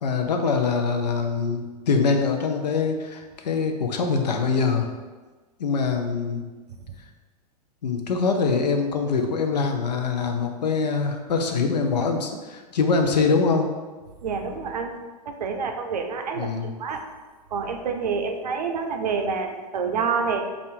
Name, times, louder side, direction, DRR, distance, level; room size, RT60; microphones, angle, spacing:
voice 1, 0.0-4.9 5.6-6.4 7.8-13.7 16.4-16.7, left 4 dB, 85° left, 4 dB, 0.5 m, -24 dB
voice 2, 14.2-15.0 15.3-17.1 17.5-20.5, right 5 dB, 80° right, 5 dB, 0.5 m, -28 dB
2.6 x 2.4 x 3.5 m, 1.3 s
hypercardioid pair, 105°, 21 cm